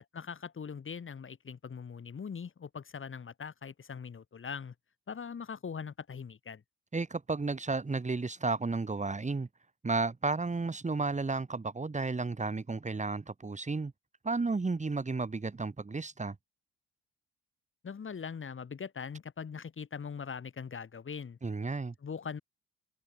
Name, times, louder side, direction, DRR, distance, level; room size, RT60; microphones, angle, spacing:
voice 1, 0.1-4.7 5.1-6.6 17.8-21.4 22.0-22.4, left 6 dB, 40° left, 5.7 m, -41 dB
voice 2, 6.9-9.5 9.8-13.9 14.2-16.4 21.4-21.9, right 3 dB, 25° right, 3.9 m, -32 dB
cardioid pair, 90°, 30 cm